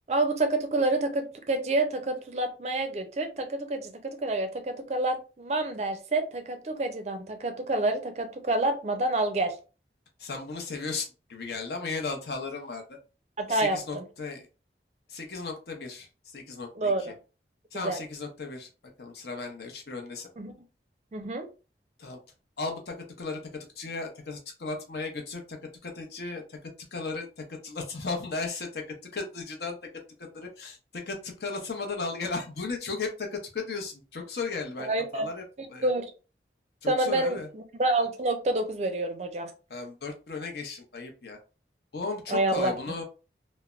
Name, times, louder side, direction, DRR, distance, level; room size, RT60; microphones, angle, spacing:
voice 1, 0.1-9.5 13.4-14.0 16.8-17.1 17.8-18.0 20.4-20.5 21.1-21.5 34.8-35.3 35.8-36.1 36.9-39.5 42.3-42.7, right 2 dB, 40° right, 6 dB, 0.4 m, -28 dB
voice 2, 10.2-13.0 13.5-14.5 15.1-17.1 17.7-18.7 19.0-20.3 22.0-22.2 22.6-23.4 23.8-25.6 25.8-28.8 29.1-29.8 30.2-35.4 35.7-35.9 36.8-37.5 39.7-41.4 41.9-43.0, left 4 dB, 65° left, 3 dB, 0.6 m, -35 dB
3.2 x 2.0 x 2.3 m, 0.33 s
head